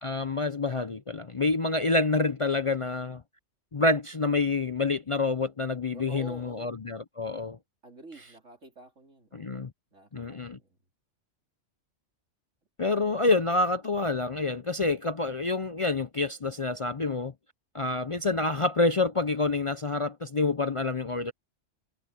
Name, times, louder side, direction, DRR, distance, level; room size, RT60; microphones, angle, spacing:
voice 1, 0.0-3.2 3.7-7.6 9.3-9.7 10.1-10.6 12.8-17.3 17.7-21.3, left 3 dB, 35° left, 0.6 m, -27 dB
voice 2, 5.9-6.8 7.8-9.7 9.9-10.8 12.9-13.4, right 2 dB, 75° right, 3.7 m, -48 dB
omnidirectional pair, 1.3 m